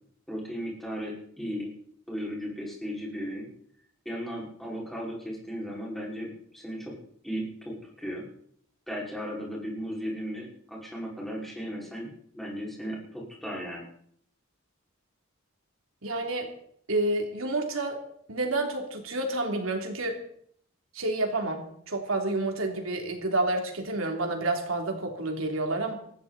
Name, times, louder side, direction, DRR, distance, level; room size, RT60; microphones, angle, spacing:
voice 1, 0.3-1.7 2.1-3.5 4.1-7.0 7.2-8.2 8.9-13.8, equal, ahead, -4 dB, 5.5 m, -36 dB
voice 2, 16.0-16.5 16.9-18.0 18.3-20.2 20.9-25.9, right 2 dB, 85° right, 3 dB, 3.3 m, -29 dB
20.0 x 15.5 x 4.3 m, 0.65 s
head